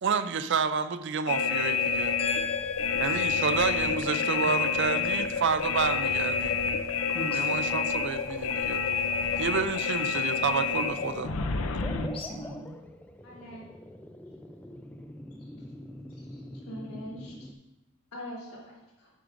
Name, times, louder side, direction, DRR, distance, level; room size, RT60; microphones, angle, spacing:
voice 1, 0.0-2.1 2.9-6.6 7.3-8.8 9.4-11.3, right 5 dB, 55° right, 12 dB, 0.4 m, -29 dB
sound 1, 1.3-12.1, left 5 dB, 65° left, 0.5 m, -28 dB
voice 2, 2.2-3.4 4.3-4.5 4.9-5.1 7.1-7.5 11.9-12.8, left 3 dB, 25° left, 0 dB, 0.9 m, -38 dB
sound 2, 3.4-17.5, left 1 dB, 5° left, 0.4 m, -46 dB
voice 3, 13.2-13.6 16.2-17.5 18.1-19.1, equal, 85° left, -4 dB, 3.3 m, -43 dB
10.0 x 9.5 x 2.6 m, 0.97 s
head